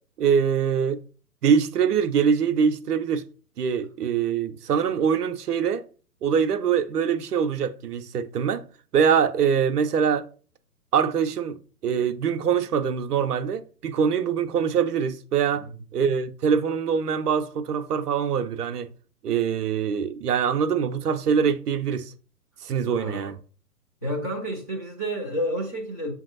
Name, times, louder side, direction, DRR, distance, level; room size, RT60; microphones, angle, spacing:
voice 1, 0.2-1.0 1.4-3.2 3.6-5.8 6.2-8.7 8.9-10.3 10.9-15.6 15.9-18.9 19.2-22.1 22.6-23.4, right 7 dB, 75° right, 0.6 m, -23 dB
voice 2, 22.9-23.3 24.0-26.1, equal, 10° left, 0.4 m, -30 dB
7.0 x 2.7 x 2.5 m
figure-of-eight pair, 130°, 47 cm